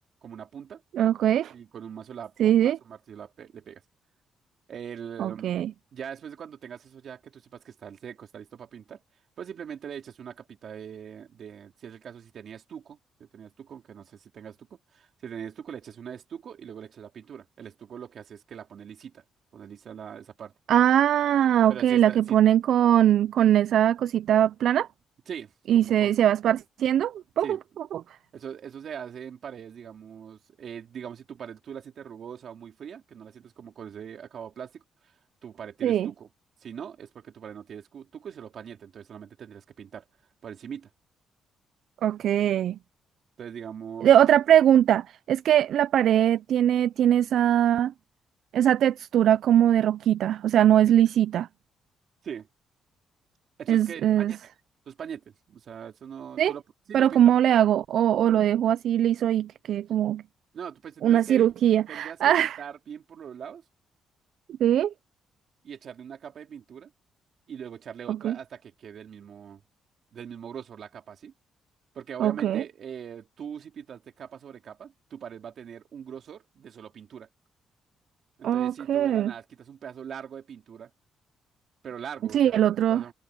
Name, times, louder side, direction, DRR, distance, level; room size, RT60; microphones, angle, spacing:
voice 1, 0.2-0.8 1.5-3.8 4.7-5.6 5.9-9.0 9.4-14.7 14.9-19.2 19.5-20.5 21.7-22.4 25.3-26.1 27.4-27.6 28.3-35.1 35.4-36.3 36.6-40.1 40.4-40.9 43.4-44.1 52.2-52.5 53.6-54.4 54.9-56.6 56.9-57.2 60.5-61.5 61.9-63.6 65.6-66.9 67.5-69.6 70.1-71.3 71.9-77.3 78.4-80.9 81.8-83.1, right 8 dB, 55° right, 3.7 m, -41 dB
voice 2, 0.9-1.5 2.4-2.8 5.2-5.7 20.7-24.9 25.7-27.6 27.9-28.0 35.8-36.1 42.0-42.8 44.0-47.9 48.5-51.5 53.7-54.3 56.4-56.5 56.9-60.2 61.0-62.6 64.6-64.9 68.1-68.4 72.2-72.6 78.4-79.3 82.3-83.0, right 11 dB, 70° right, 0.3 m, -21 dB
cardioid pair, 140°, 0 cm